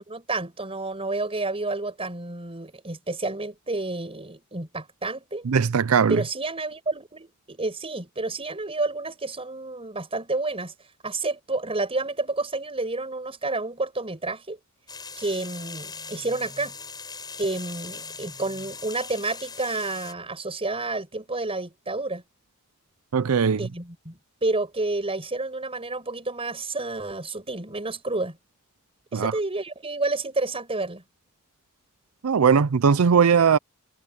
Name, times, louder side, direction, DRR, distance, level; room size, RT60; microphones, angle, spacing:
voice 1, 0.0-5.5 6.1-10.7 11.0-14.6 15.2-16.7 17.4-22.2 23.6-28.4 29.1-31.0, right 2 dB, 25° right, 5.8 m, -30 dB
voice 2, 5.5-6.2 23.1-23.6 29.1-29.3 32.2-33.6, right 6 dB, 90° right, 0.5 m, -19 dB
sound 1, 14.9-20.1, left 4 dB, 20° left, 7.1 m, -40 dB
head